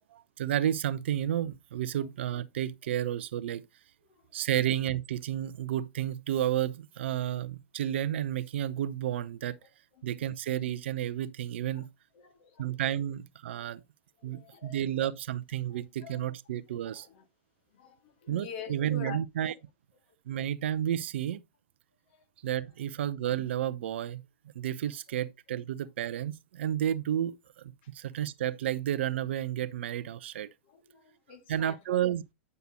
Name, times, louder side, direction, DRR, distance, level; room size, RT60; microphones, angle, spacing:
voice 1, 0.1-3.6 4.3-9.6 10.0-11.9 12.6-13.8 14.2-17.1 18.3-19.5 20.3-21.4 22.4-24.2 24.5-30.5 31.5-32.2, right 11 dB, 65° right, 0.7 m, -31 dB
voice 2, 4.0-4.4 9.6-10.3 11.7-11.9 12.1-12.8 13.6-13.8 14.2-14.8 15.7-16.2 16.7-17.3 17.7-19.2 22.1-22.2 25.1-25.2 27.8-27.9 30.6-32.1, left 6 dB, 55° left, 2.4 m, -47 dB
9.6 x 6.6 x 2.9 m
hypercardioid pair, 110°, 7 cm